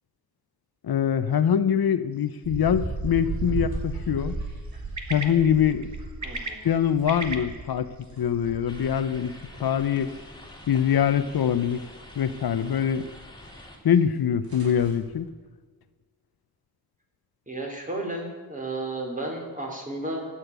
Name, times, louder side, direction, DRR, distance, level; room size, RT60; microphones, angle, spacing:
voice 1, 0.8-4.3 5.1-5.9 6.6-7.9 8.2-9.3 9.6-10.1 10.7-11.8 12.2-13.0 13.8-15.3, left 8 dB, 90° left, 12 dB, 0.8 m, -23 dB
sound 1, 2.1-13.8, right 3 dB, 50° right, 2.0 m, -43 dB
sound 2, 2.4-9.6 9.9-10.8 11.1-11.2 11.6-11.7 13.7-13.8 14.1-14.2 14.4-14.9, right 3 dB, 80° right, 4.5 m, -35 dB
voice 2, 6.2-6.6 17.5-20.3, right 2 dB, 20° right, 1 dB, 4.0 m, -33 dB
sound 3, 8.7-13.8, left 1 dB, 10° left, 2.9 m, -46 dB
14.5 x 10.0 x 8.2 m, 1.5 s
wide cardioid pair, 100°, 36 cm